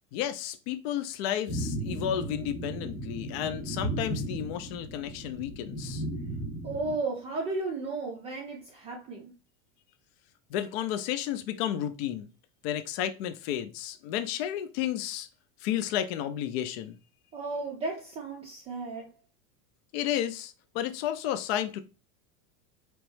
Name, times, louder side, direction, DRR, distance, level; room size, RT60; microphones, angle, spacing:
voice 1, 0.1-6.0 10.5-12.3 12.6-15.3 15.6-17.0 19.9-21.8, left 11 dB, 60° left, 0.5 m, -32 dB
sound 1, 1.5-7.0, right 1 dB, ahead, 0.9 m, -35 dB
voice 2, 6.6-9.3 17.3-19.1, right 3 dB, 20° right, 0.4 m, -34 dB
4.3 x 3.0 x 3.1 m
supercardioid pair, 170°, 35 cm